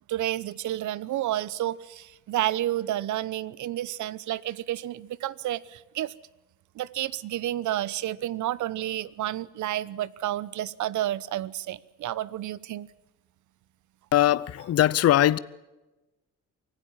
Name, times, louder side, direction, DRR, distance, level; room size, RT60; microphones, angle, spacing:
voice 1, 0.1-6.1 6.7-12.9, right 13 dB, 75° right, 0.9 m, -30 dB
voice 2, 14.1-15.4, left 12 dB, 55° left, 0.7 m, -21 dB
24.5 x 15.5 x 7.3 m
cardioid pair, 90°, 30 cm